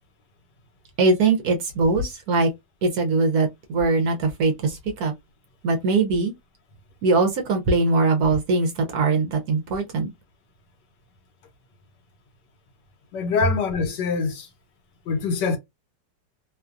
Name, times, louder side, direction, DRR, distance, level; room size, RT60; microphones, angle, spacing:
voice 1, 1.0-2.5 2.8-5.1 5.6-6.3 7.0-10.1, right 3 dB, 65° right, 1.0 m, -21 dB
voice 2, 13.1-14.5 15.1-15.6, left 5 dB, 75° left, 1.4 m, -24 dB
3.0 x 2.3 x 2.4 m
omnidirectional pair, 2.0 m